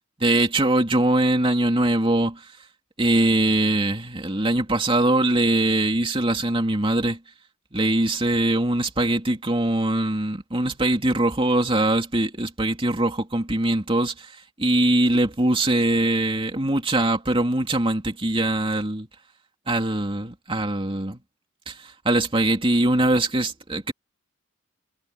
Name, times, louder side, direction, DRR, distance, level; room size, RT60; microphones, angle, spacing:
voice 1, 0.2-2.4 3.0-7.2 7.7-14.3 14.6-19.1 19.7-21.2 21.7-23.9, right 1 dB, 25° right, 2.8 m, -22 dB
head